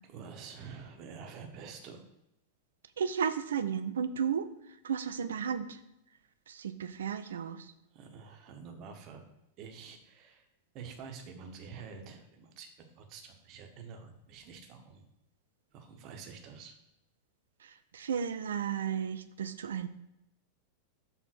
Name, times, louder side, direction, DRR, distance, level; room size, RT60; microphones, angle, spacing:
voice 1, 0.0-2.0 7.9-9.2 9.6-10.5 10.7-15.1 15.7-16.8, right 6 dB, 40° right, 5 dB, 1.1 m, -48 dB
voice 2, 3.0-4.5 4.8-5.8 6.5-7.7 17.6-19.9, right 7 dB, 65° right, 11 dB, 0.5 m, -33 dB
6.5 x 3.8 x 6.1 m, 0.86 s
figure-of-eight pair, 90°, 0 cm